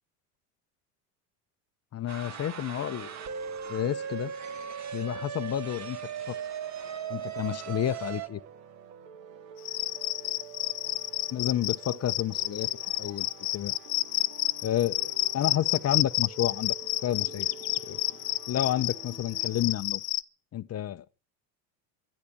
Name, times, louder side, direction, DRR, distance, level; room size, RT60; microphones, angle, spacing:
voice 1, 1.9-3.1 3.7-4.3 4.9-6.0 6.3-6.4 7.1-8.4 11.3-12.7 13.0-13.3 13.5-13.7 14.6-16.7 17.0-17.5 17.9-18.0 18.5-20.0 20.5-21.0, left 11 dB, 35° left, 0.7 m, -30 dB
sound 1, 2.1-8.3, right 7 dB, 35° right, 1.7 m, -37 dB
sound 2, 2.8-19.8, right 8 dB, 90° right, 1.8 m, -49 dB
Cricket, 9.6-20.2, left 18 dB, 85° left, 0.8 m, -30 dB
12.0 x 11.0 x 8.8 m
hypercardioid pair, 85°, 48 cm